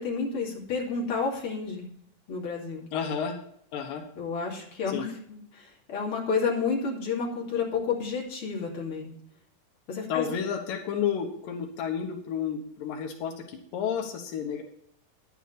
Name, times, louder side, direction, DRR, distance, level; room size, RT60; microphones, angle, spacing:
voice 1, 0.0-1.9 2.3-2.9 4.2-5.1 5.5-9.1 9.9-10.3, left 5 dB, 40° left, -3 dB, 3.3 m, -30 dB
voice 2, 2.9-3.4 3.7-4.0 4.9-5.1 10.1-14.6, left 7 dB, 85° left, 3 dB, 2.9 m, -31 dB
10.5 x 9.2 x 4.2 m, 0.68 s
omnidirectional pair, 3.8 m